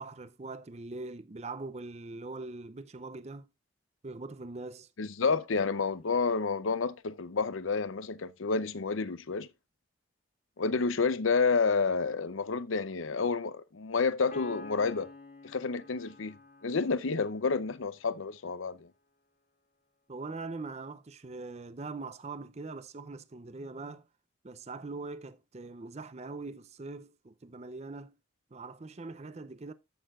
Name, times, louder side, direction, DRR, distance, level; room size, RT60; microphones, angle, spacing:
voice 1, 0.0-3.5 4.0-4.9 20.1-24.1 24.4-28.2 28.5-29.7, right 3 dB, 35° right, 0.5 m, -42 dB
voice 2, 5.0-9.5 10.6-15.1 15.4-16.4 16.6-18.9, left 4 dB, 85° left, 0.7 m, -29 dB
Piano, 14.3-17.9, left 2 dB, 40° left, 1.9 m, -49 dB
14.0 x 6.6 x 2.4 m
head